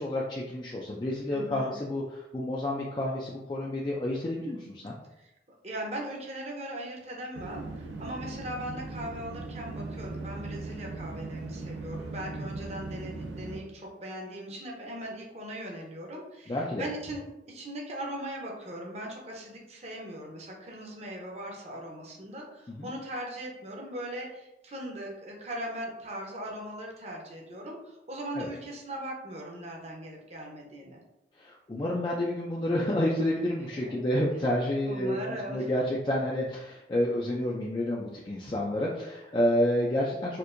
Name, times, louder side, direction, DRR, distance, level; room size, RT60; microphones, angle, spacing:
voice 1, 0.0-5.0 16.5-16.8 22.7-22.9 28.4-28.5 31.4-40.4, left 1 dB, 25° left, -3 dB, 0.3 m, -29 dB
voice 2, 1.3-1.7 5.2-5.3 5.6-31.0 33.7-33.9 34.8-35.7, right 1 dB, 35° right, -1 dB, 0.7 m, -39 dB
sound 1, 7.3-13.6, right 3 dB, 90° right, 0.5 m, -39 dB
4.3 x 2.5 x 2.5 m, 0.89 s
head